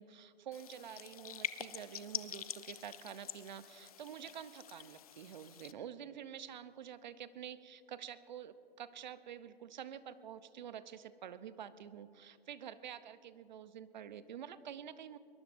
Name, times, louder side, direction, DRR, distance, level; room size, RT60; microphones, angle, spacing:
voice 1, 0.0-15.2, right 9 dB, 50° right, 14 dB, 0.7 m, -48 dB
sound 1, 0.5-5.7, left 10 dB, 40° left, 0.5 m, -46 dB
23.0 x 21.0 x 2.6 m, 2.6 s
hypercardioid pair, 160°, 30 cm